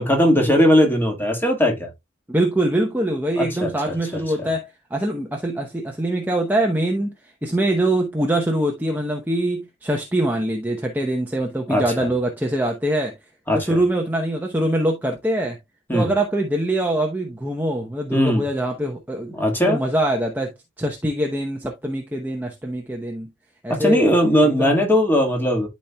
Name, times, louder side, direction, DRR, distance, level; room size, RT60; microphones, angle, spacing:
voice 1, 0.0-1.9 3.4-3.7 4.4-4.5 11.7-11.8 13.5-13.8 15.9-16.1 18.1-18.4 19.3-19.8 23.7-25.7, equal, 10° left, 1.6 m, -18 dB
voice 2, 2.3-7.1 7.4-13.1 13.5-15.6 15.9-19.3 19.7-23.3 23.6-24.1 24.4-24.8, right 1 dB, 10° right, 0.7 m, -23 dB
12.0 x 4.3 x 2.2 m
head